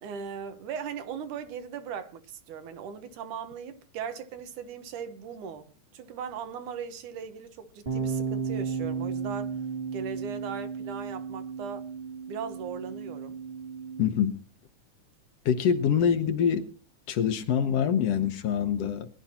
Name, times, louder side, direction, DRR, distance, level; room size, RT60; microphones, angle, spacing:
voice 1, 0.0-9.6 9.9-11.9 12.3-13.4, right 7 dB, 80° right, 2.7 m, -38 dB
sound 1, 7.9-14.1, right 5 dB, 30° right, 1.1 m, -34 dB
voice 2, 14.0-14.4 15.5-16.7 17.1-19.1, left 8 dB, 65° left, 1.8 m, -25 dB
22.5 x 11.5 x 2.9 m
omnidirectional pair, 3.5 m